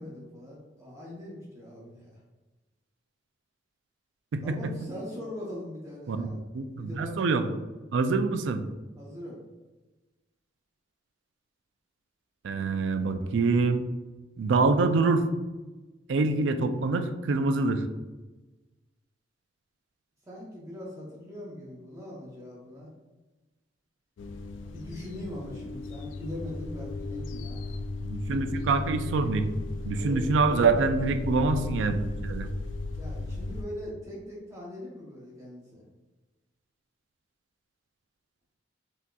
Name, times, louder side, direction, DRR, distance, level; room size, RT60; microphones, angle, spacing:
voice 1, 0.0-2.0 4.4-6.4 6.7-7.4 9.0-9.4 20.3-22.9 24.7-27.7 29.9-30.2 30.5-30.8 32.9-35.8, left 1 dB, 15° right, -5 dB, 0.7 m, -41 dB
voice 2, 4.3-4.7 6.1-7.4 7.9-8.6 12.4-13.8 14.4-15.3 16.1-17.8 28.0-29.4 29.8-32.5, right 3 dB, 80° right, 8 dB, 0.4 m, -25 dB
sound 1, 24.2-33.6, left 2 dB, 80° left, 0.3 m, -36 dB
5.8 x 2.8 x 2.3 m, 1.2 s
head